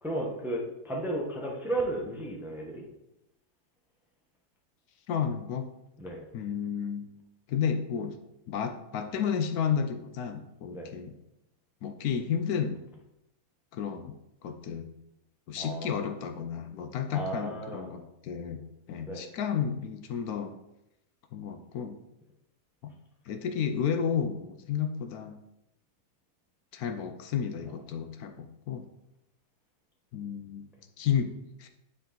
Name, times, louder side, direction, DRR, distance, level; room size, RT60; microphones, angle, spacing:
voice 1, 0.0-2.8 6.0-6.3 10.7-10.9 15.6-16.1 17.1-17.9 19.1-19.2, right 1 dB, ahead, -1 dB, 0.8 m, -34 dB
voice 2, 5.1-5.7 6.3-7.1 7.5-8.2 8.5-11.1 11.8-12.8 13.7-14.1 14.4-14.9 15.5-18.6 18.9-20.6 21.3-22.0 22.8-22.9 23.3-25.4 26.7-28.9 30.1-30.7 31.0-31.7, left 7 dB, 75° left, 7 dB, 1.1 m, -32 dB
9.5 x 3.7 x 3.8 m, 0.88 s
omnidirectional pair, 1.7 m